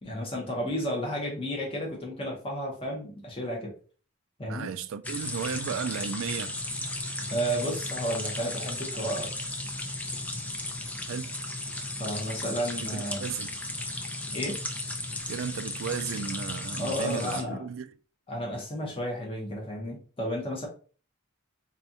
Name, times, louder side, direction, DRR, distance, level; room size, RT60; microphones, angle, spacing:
voice 1, 0.0-3.7 4.4-4.7 7.3-9.3 12.0-13.3 14.3-14.6 16.8-17.6 18.3-20.7, equal, 25° left, 0.9 m, -32 dB
voice 2, 4.5-6.6 11.1-11.3 12.9-13.5 15.3-17.9, right 7 dB, 70° right, 0.3 m, -34 dB
sound 1, 5.0-17.4, left 2 dB, 5° left, 0.4 m, -35 dB
4.2 x 2.4 x 2.7 m
head